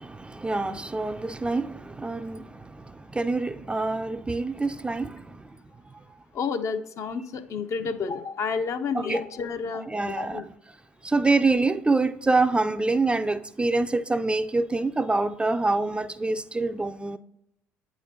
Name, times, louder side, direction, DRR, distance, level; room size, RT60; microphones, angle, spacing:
voice 1, 0.0-5.6 8.9-9.2 9.9-10.4 11.0-17.2, right 3 dB, 15° right, 0.4 m, -26 dB
voice 2, 6.3-10.4, left 5 dB, 50° left, 0.5 m, -30 dB
8.6 x 4.9 x 2.7 m
hypercardioid pair, 50°, 7 cm